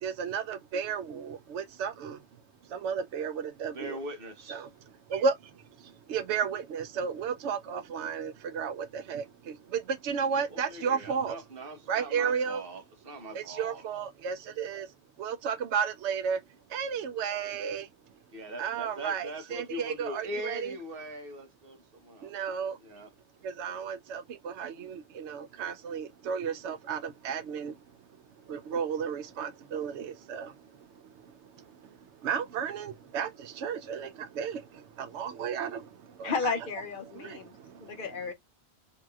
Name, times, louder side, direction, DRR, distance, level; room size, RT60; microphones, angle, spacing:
voice 1, 0.0-2.2 2.7-4.0 4.5-4.7 5.1-5.4 5.8-11.3 11.9-12.6 13.3-14.9 15.2-16.4 16.7-17.9 18.6-20.7 22.2-22.8 23.4-27.8 28.5-30.7 31.2-31.9 32.2-36.5 37.1-38.0, right 6 dB, 90° right, 0.9 m, -33 dB
voice 2, 3.7-4.7 10.5-13.8 18.3-22.3 22.8-23.1, right 1 dB, 60° right, 1.1 m, -41 dB
voice 3, 36.2-37.6 37.8-38.3, left 4 dB, 55° left, 0.7 m, -33 dB
2.8 x 2.8 x 2.3 m
omnidirectional pair, 1.1 m